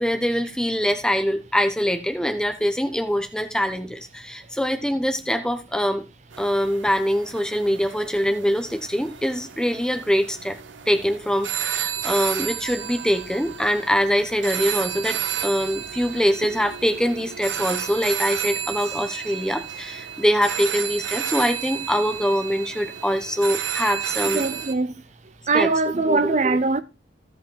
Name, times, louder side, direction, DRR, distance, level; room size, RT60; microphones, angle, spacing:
voice 1, 0.0-6.0 6.4-10.6 10.9-24.4 25.5-25.7 26.1-26.3, equal, 5° left, 1.2 m, -23 dB
sound 1, 6.3-24.7, right 9 dB, 85° right, 0.9 m, -32 dB
voice 2, 24.3-24.9 25.5-26.8, right 3 dB, 40° right, 0.5 m, -21 dB
16.0 x 5.4 x 4.0 m
head